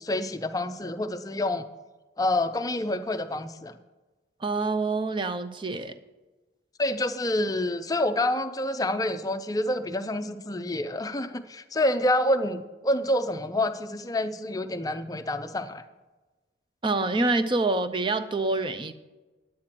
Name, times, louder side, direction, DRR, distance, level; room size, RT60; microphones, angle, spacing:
voice 1, 0.0-1.6 2.2-3.8 6.8-15.8, left 1 dB, 20° left, 9 dB, 0.5 m, -27 dB
voice 2, 4.4-5.9 16.8-18.9, right 3 dB, 25° right, 11 dB, 0.6 m, -26 dB
9.7 x 9.2 x 5.9 m, 1.2 s
head